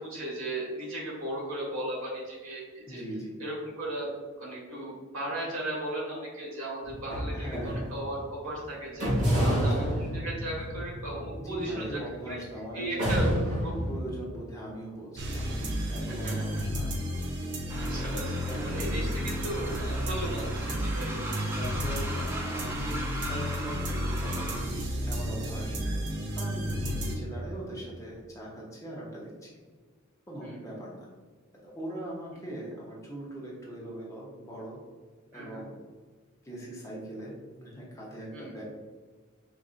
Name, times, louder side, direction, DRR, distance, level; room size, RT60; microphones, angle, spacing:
voice 1, 0.0-3.0 3.4-4.1 4.4-12.0 12.2-12.4 12.7-13.7 16.1-16.6 17.8-21.6 25.8-26.0 26.8-27.0 30.4-30.6 35.3-35.6 38.3-38.5, right 1 dB, 80° right, -5 dB, 1.5 m, -36 dB
voice 2, 2.9-3.3 7.3-7.9 9.4-10.1 11.4-17.1 17.9-18.1 18.4-19.4 21.6-25.7 26.3-29.6 30.3-31.1 31.6-34.8 35.3-35.8 36.4-38.6, right 1 dB, 15° left, -5 dB, 0.7 m, -40 dB
sound 1, 6.8-8.3 9.0-12.4 13.0-14.0, equal, 35° right, 1.2 m, -29 dB
sound 2, 15.2-27.2, equal, 55° right, 0.6 m, -32 dB
Train, 17.7-24.7, right 1 dB, 10° right, 0.3 m, -38 dB
5.0 x 2.5 x 2.4 m, 1.4 s
head